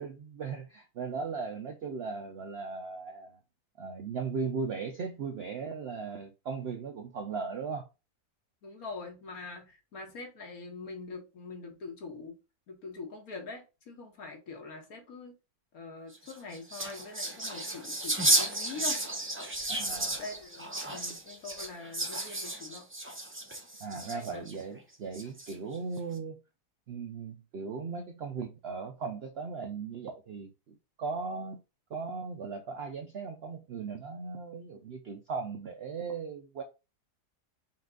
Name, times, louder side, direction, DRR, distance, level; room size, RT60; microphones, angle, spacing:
voice 1, 0.0-3.4 3.8-7.9 19.7-20.2 23.8-26.3 26.9-31.6 31.9-36.6, right 5 dB, 65° right, 0.6 m, -37 dB
voice 2, 8.6-12.4 12.7-15.3 15.7-19.0 20.2-22.9 24.0-24.5, left 4 dB, 65° left, 1.7 m, -43 dB
sound 1, 16.1-24.5 25.1-25.7, right 1 dB, 20° right, 0.4 m, -33 dB
5.7 x 2.4 x 3.8 m
omnidirectional pair, 1.7 m